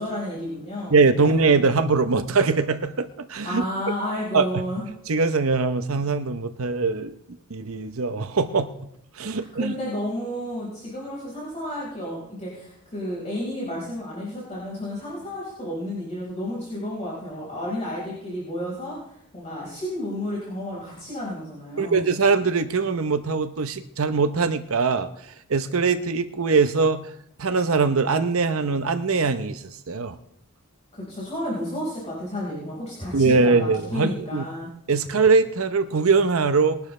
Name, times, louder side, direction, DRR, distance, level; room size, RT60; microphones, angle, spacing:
voice 1, 0.0-1.5 3.4-4.9 9.3-22.2 30.9-34.7, left 1 dB, 30° left, -6 dB, 4.7 m, -32 dB
voice 2, 0.9-3.6 4.3-4.6 5.1-7.1 7.5-8.7 9.1-9.7 21.8-27.1 27.4-30.2 33.1-34.4 34.9-36.8, right 4 dB, 70° right, 9 dB, 0.8 m, -22 dB
21.5 x 11.5 x 3.2 m, 0.75 s
head